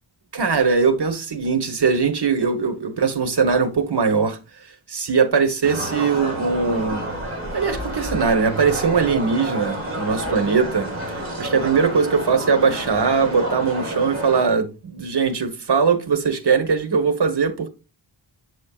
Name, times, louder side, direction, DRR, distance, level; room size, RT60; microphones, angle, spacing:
voice 1, 0.3-4.4 4.9-7.1 7.5-17.7, right 5 dB, 60° right, 1.2 m, -20 dB
sound 1, 5.6-14.4, right 1 dB, 30° right, 3.4 m, -29 dB
7.9 x 6.3 x 2.4 m
wide cardioid pair, 90°, 46 cm